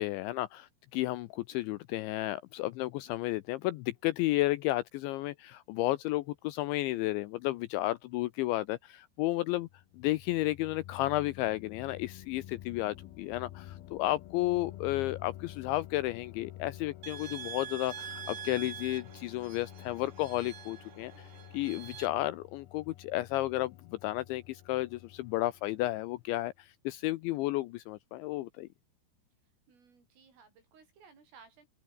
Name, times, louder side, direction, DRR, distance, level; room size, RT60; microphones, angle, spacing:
voice 1, 0.0-9.7 10.0-21.3 21.5-28.7, left 17 dB, 85° left, 2.7 m, -32 dB
sound 1, 9.6-26.3, left 13 dB, 70° left, 2.5 m, -49 dB
sound 2, 17.0-22.1, right 8 dB, 50° right, 3.3 m, -45 dB
voice 2, 29.7-31.7, right 5 dB, 70° right, 9.5 m, -58 dB
open air
omnidirectional pair, 6.0 m